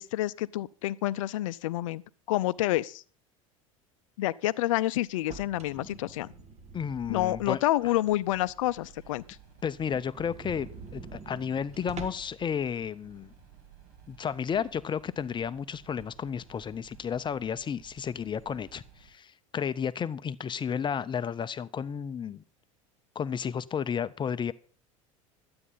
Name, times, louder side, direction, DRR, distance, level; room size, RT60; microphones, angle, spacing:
voice 1, 0.0-2.0 2.3-3.0 4.2-6.3 7.1-9.2, left 15 dB, 70° left, 0.6 m, -28 dB
sound 1, 5.1-7.7 8.1-8.2 8.6-8.7 9.0-9.1 9.4-9.5 9.8-12.4, right 4 dB, 40° right, 1.9 m, -45 dB
voice 2, 6.7-7.9 9.6-13.3 14.1-22.4 23.2-24.5, left 7 dB, 25° left, 0.6 m, -32 dB
sound 2, 7.8-19.1, right 7 dB, 60° right, 3.1 m, -55 dB
12.0 x 8.7 x 5.6 m
hypercardioid pair, 80°, 17 cm